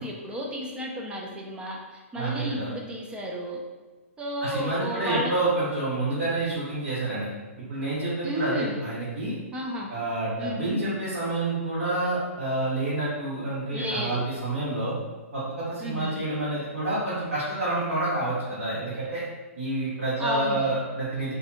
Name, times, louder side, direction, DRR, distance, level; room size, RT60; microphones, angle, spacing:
voice 1, 0.0-3.6 4.2-5.3 8.2-8.8 9.5-9.9 10.4-10.8 13.7-14.2 15.8-16.2 20.2-20.7, equal, 10° right, -1 dB, 0.3 m, -32 dB
voice 2, 2.1-2.7 4.4-7.3 7.7-9.4 9.9-15.0 15.3-19.2 19.6-21.3, right 2 dB, 75° right, -11 dB, 1.1 m, -28 dB
2.6 x 2.3 x 2.7 m, 1.3 s
hypercardioid pair, 125°, 8 cm